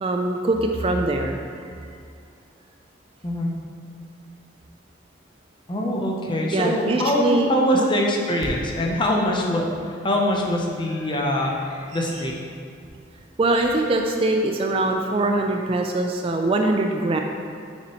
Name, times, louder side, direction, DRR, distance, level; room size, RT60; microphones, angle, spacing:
voice 1, 0.0-1.4 6.5-7.9 13.4-17.2, right 2 dB, 30° right, 3 dB, 0.3 m, -22 dB
voice 2, 3.2-3.5 5.7-9.7 10.0-11.5 11.9-12.3, left 1 dB, 25° left, -1 dB, 0.7 m, -23 dB
sound 1, 4.7-4.8 5.0-5.1 8.4-13.7, right 1 dB, 85° right, 0.9 m, -40 dB
6.7 x 6.0 x 3.1 m, 2.3 s
head